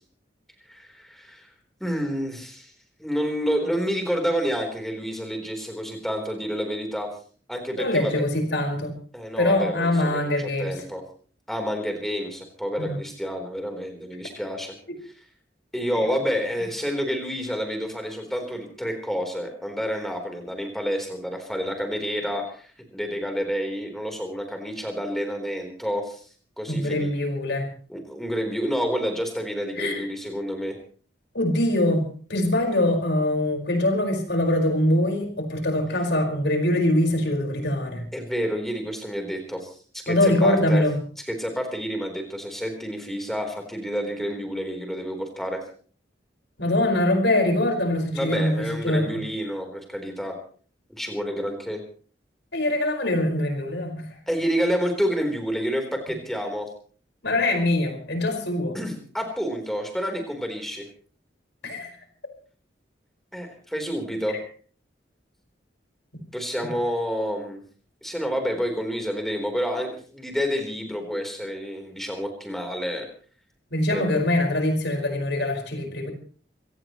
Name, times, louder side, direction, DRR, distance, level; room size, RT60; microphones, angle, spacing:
voice 1, 0.7-1.5 1.8-2.7 3.0-7.1 7.5-8.2 9.1-11.0 11.5-14.7 15.7-26.2 26.6-27.1 27.9-30.8 38.1-40.8 41.2-45.6 48.1-50.3 50.9-51.8 54.3-56.7 58.7-60.9 63.3-64.4 66.3-67.6 68.0-73.1 73.9-74.2, equal, ahead, 3 dB, 3.9 m, -29 dB
voice 2, 7.8-8.9 9.4-10.7 12.8-13.0 15.9-16.2 26.7-27.7 29.7-30.1 31.3-38.0 40.1-41.0 46.6-49.2 52.5-54.1 57.2-58.8 61.6-61.9 66.7-66.8 73.7-76.1, left 1 dB, 75° left, 3 dB, 5.2 m, -23 dB
26.0 x 17.5 x 3.1 m, 0.43 s
head